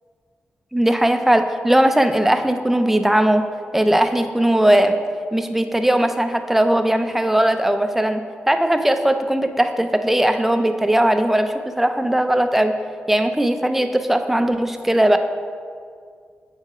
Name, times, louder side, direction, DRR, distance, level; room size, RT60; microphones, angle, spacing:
voice 1, 0.7-3.5 3.7-5.0 5.3-8.2 8.5-12.7 13.1-15.2, right 1 dB, 5° right, 7 dB, 0.4 m, -18 dB
7.5 x 4.6 x 4.8 m, 2.2 s
wide cardioid pair, 120°, 4 cm